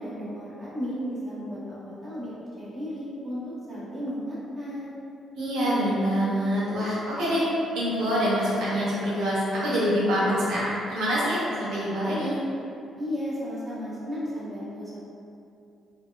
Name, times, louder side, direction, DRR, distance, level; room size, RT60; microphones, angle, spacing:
voice 1, 0.0-5.0 13.0-15.0, equal, 20° right, -9 dB, 1.0 m, -34 dB
voice 2, 5.4-7.4 7.7-12.4, equal, 85° right, -8 dB, 0.8 m, -25 dB
4.1 x 2.2 x 2.2 m, 2.7 s
cardioid pair, 95°, 0 cm